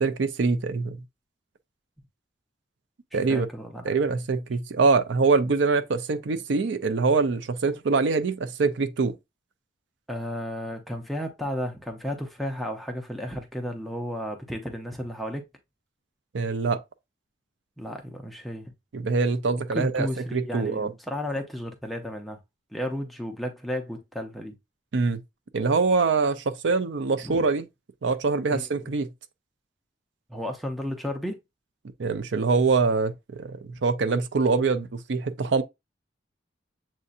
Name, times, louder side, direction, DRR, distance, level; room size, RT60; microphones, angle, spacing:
voice 1, 0.0-1.0 3.1-3.5 3.8-9.1 16.3-16.8 18.9-20.9 24.9-25.2 25.5-27.7 28.0-29.1 32.0-35.6, right 4 dB, 75° right, 0.5 m, -24 dB
voice 2, 3.1-3.9 10.1-15.4 17.8-18.7 19.7-22.4 22.7-24.6 27.2-27.5 28.5-28.6 30.3-31.4, equal, ahead, 0.6 m, -33 dB
7.4 x 2.7 x 2.4 m
head